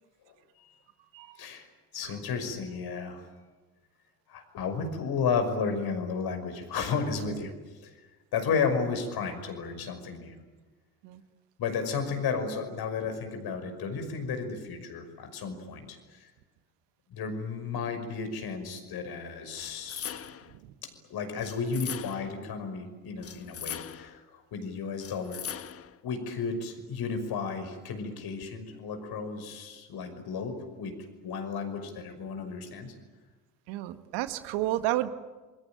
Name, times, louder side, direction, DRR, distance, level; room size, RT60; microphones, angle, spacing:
voice 1, 1.4-1.7 1.9-3.2 4.3-7.5 7.8-7.9 8.3-10.3 11.6-16.3 17.1-20.2 20.8-25.4 26.0-30.9 31.2-32.9, left 5 dB, 55° left, 7 dB, 5.9 m, -33 dB
sound 1, 19.6-20.6 21.4-22.4 23.2-24.2 25.0-26.0, left 8 dB, 30° left, 1.0 m, -40 dB
voice 2, 33.7-35.1, right 15 dB, 65° right, 10 dB, 1.7 m, -31 dB
27.5 x 22.5 x 9.1 m, 1.2 s
hypercardioid pair, 60°, 44 cm